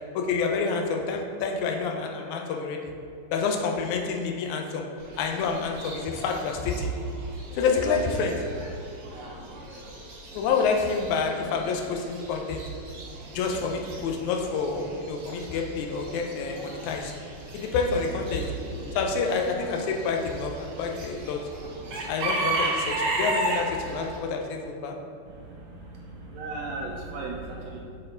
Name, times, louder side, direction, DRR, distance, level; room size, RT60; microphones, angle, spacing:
voice 1, 0.2-2.8 3.3-4.9 5.2-6.9 7.5-8.4 10.3-12.6 13.3-17.1 17.5-18.4 19.0-21.4 22.1-25.0, left 4 dB, 85° left, 2 dB, 2.0 m, -28 dB
Chicken rooster / Bird, 5.0-24.2, right 2 dB, 55° right, 1.3 m, -35 dB
voice 2, 25.3-27.8, right 2 dB, 80° right, -1 dB, 1.6 m, -36 dB
6.3 x 4.3 x 3.8 m, 2.4 s
omnidirectional pair, 3.3 m